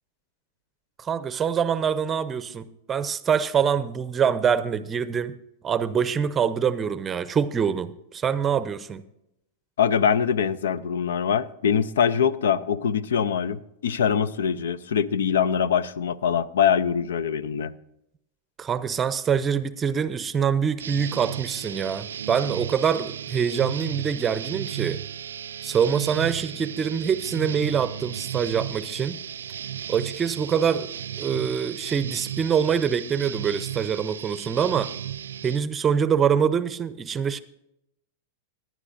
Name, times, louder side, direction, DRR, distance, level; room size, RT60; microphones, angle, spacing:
voice 1, 1.0-5.3 5.6-9.0 18.6-25.0 25.6-29.2 29.9-34.9 35.4-37.4, right 7 dB, 25° right, 0.6 m, -25 dB
voice 2, 9.8-17.7, left 7 dB, 80° left, 0.5 m, -23 dB
sound 1, 20.8-35.6, right 9 dB, 85° right, 0.3 m, -34 dB
17.5 x 11.0 x 2.6 m
hypercardioid pair, 115°, 0 cm